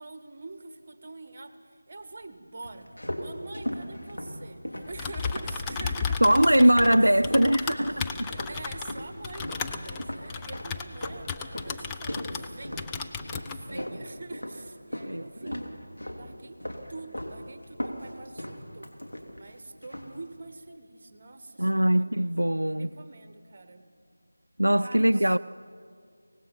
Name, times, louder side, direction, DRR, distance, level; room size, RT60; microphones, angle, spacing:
voice 1, 0.0-2.9 3.2-7.5 7.9-8.0 8.3-12.9 13.5-15.8 16.1-16.6 16.9-18.9 19.3-22.4 22.8-23.9 24.8-25.4, right 3 dB, 35° right, 1.5 m, -45 dB
sound 1, 2.6-7.5 7.8-8.6 8.9-15.2 15.5-16.3 16.6-17.4 17.6-19.5 19.8-20.2, equal, 80° left, 3.2 m, -37 dB
Typing, 4.8-12.5 12.8-13.6, left 5 dB, 10° left, 0.5 m, -34 dB
voice 2, 6.2-8.3 13.7-13.9 15.1-15.6 21.6-22.9 24.6-25.4, right 1 dB, 85° right, 0.4 m, -22 dB
24.0 x 19.0 x 5.8 m
figure-of-eight pair, 165°, 0 cm